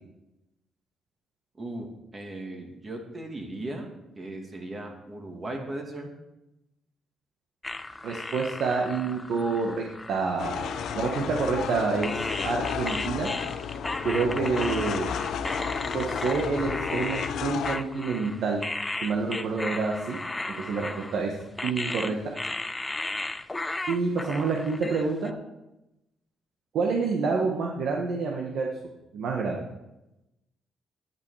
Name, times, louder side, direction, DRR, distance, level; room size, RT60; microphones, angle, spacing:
voice 1, 1.6-1.9 2.1-3.9 4.2-6.1, right 1 dB, 30° right, 3 dB, 2.3 m, -37 dB
sound 1, 7.6-11.7 12.0-25.3, left 2 dB, 15° left, 0.6 m, -35 dB
voice 2, 8.0-13.3 14.0-15.1 15.9-18.6 19.0-20.2 20.6-21.3 21.6-22.2 23.9-25.3 26.7-28.7 29.1-29.6, right 4 dB, 70° right, 1 dB, 1.4 m, -28 dB
sound 2, 10.4-17.8, left 7 dB, 75° left, 0.7 m, -32 dB
10.0 x 8.8 x 4.9 m, 0.94 s
cardioid pair, 90°, 0 cm